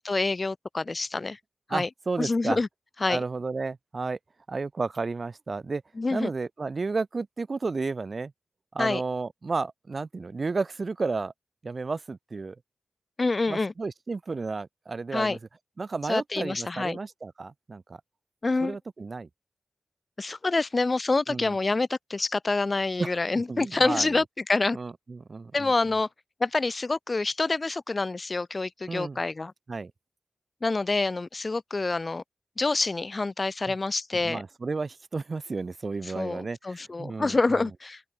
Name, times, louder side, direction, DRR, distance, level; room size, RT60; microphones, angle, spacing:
voice 1, 0.0-1.4 1.7-1.9 2.2-2.7 3.0-3.2 6.0-6.3 8.8-9.0 13.2-13.7 15.1-15.4 16.1-17.0 18.4-18.8 20.2-24.8 25.5-26.1 26.4-29.5 30.6-32.2 32.6-34.4 36.1-38.0, left 3 dB, 45° left, 0.4 m, -27 dB
voice 2, 1.7-2.6 3.1-4.2 4.5-5.8 6.1-8.3 8.7-11.3 11.6-12.6 13.5-15.4 15.8-18.0 18.6-19.3 21.3-21.6 23.0-24.2 24.7-25.7 28.9-29.2 29.7-29.9 33.7-33.8 34.1-37.7, right 4 dB, 55° right, 0.5 m, -32 dB
cardioid pair, 50°, 0 cm